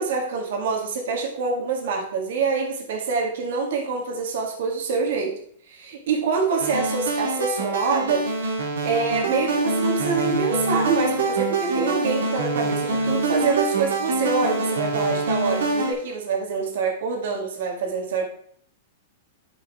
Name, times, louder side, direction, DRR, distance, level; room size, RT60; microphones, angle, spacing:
voice 1, 0.0-5.4 5.7-8.5 8.8-18.2, right 4 dB, 70° right, 2 dB, 1.9 m, -26 dB
sound 1, 6.6-15.9, right 3 dB, 85° right, 1.9 m, -25 dB
12.5 x 4.9 x 3.5 m, 0.62 s
supercardioid pair, 150°, 0 cm